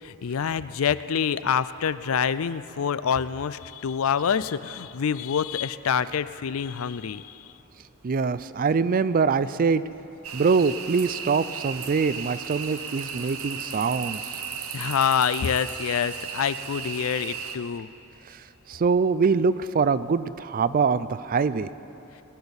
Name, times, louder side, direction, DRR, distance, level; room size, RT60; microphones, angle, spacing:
voice 1, 0.0-7.5 14.7-17.9, left 7 dB, 75° left, 15 dB, 0.4 m, -26 dB
voice 2, 8.0-9.8 10.3-14.2 18.7-21.7, right 5 dB, 40° right, 15 dB, 0.4 m, -23 dB
sound 1, 10.2-17.6, right 7 dB, 80° right, 1.0 m, -35 dB
20.5 x 7.1 x 9.7 m, 3.0 s
head